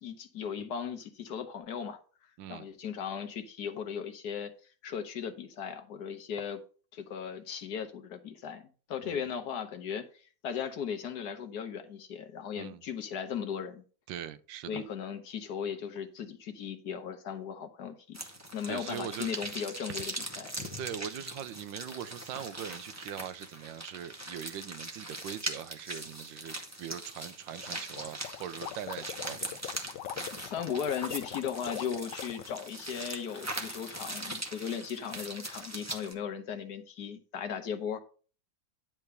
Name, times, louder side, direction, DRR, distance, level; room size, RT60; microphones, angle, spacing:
voice 1, 0.0-2.0 2.5-4.5 4.8-6.6 6.9-13.8 14.7-18.2 18.5-20.5 30.3-38.0, left 7 dB, 65° left, 1.4 m, -37 dB
voice 2, 14.1-14.8 18.7-19.3 20.8-29.6, right 9 dB, 85° right, 1.4 m, -41 dB
sound 1, 18.1-36.1, right 1 dB, 10° right, 1.0 m, -41 dB
Gurgling, 27.6-34.5, left 11 dB, 80° left, 1.3 m, -43 dB
10.5 x 3.5 x 6.7 m
omnidirectional pair, 2.0 m